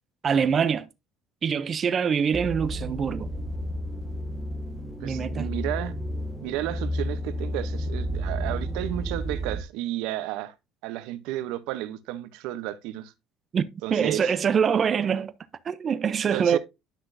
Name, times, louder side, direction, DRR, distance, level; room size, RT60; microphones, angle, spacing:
voice 1, 0.2-0.9 1.4-3.3 5.0-5.5 13.5-15.3 15.6-16.6, right 7 dB, 30° right, 0.5 m, -24 dB
sound 1, 2.3-9.6, equal, 10° right, 1.4 m, -31 dB
voice 2, 5.0-5.9 6.4-10.5 10.8-13.1 13.8-14.3 16.3-16.6, right 15 dB, 80° right, 0.7 m, -32 dB
10.0 x 6.1 x 2.6 m
cardioid pair, 150°, 0 cm